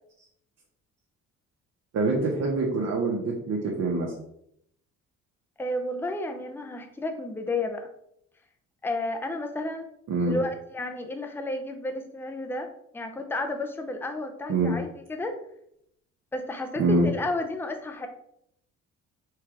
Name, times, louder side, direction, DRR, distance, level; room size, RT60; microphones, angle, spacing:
voice 1, 1.9-4.1 10.1-10.4 14.5-14.7 16.8-17.0, right 3 dB, 55° right, -2 dB, 1.0 m, -25 dB
voice 2, 5.6-7.9 8.8-9.9 10.3-12.7 12.9-15.3 16.3-18.1, left 1 dB, 5° left, 5 dB, 0.5 m, -32 dB
4.6 x 2.4 x 4.6 m, 0.74 s
cardioid pair, 90°, 30 cm